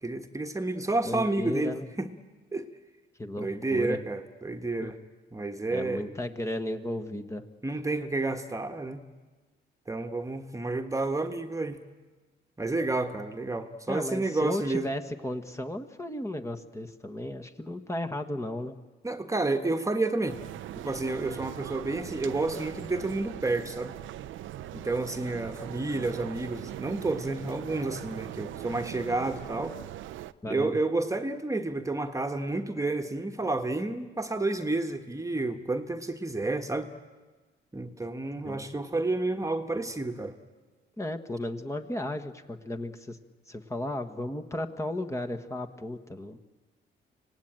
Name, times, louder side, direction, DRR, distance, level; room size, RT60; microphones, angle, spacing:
voice 1, 0.0-2.1 2.5-2.7 3.4-5.0 5.3-6.1 7.6-9.0 9.9-11.8 12.6-14.9 19.0-20.4 20.8-24.0 24.7-29.8 30.5-36.9 37.7-40.4, right 2 dB, 15° right, 6 dB, 1.5 m, -30 dB
voice 2, 1.0-1.9 3.2-4.0 4.8-4.9 5.7-7.4 13.9-18.8 30.4-30.8 38.4-38.7 41.0-43.2 43.5-46.4, left 1 dB, 15° left, 5 dB, 1.5 m, -34 dB
sound 1, 20.3-30.3, right 13 dB, 80° right, 0.7 m, -41 dB
25.5 x 18.5 x 9.0 m, 1.3 s
cardioid pair, 90°, 20 cm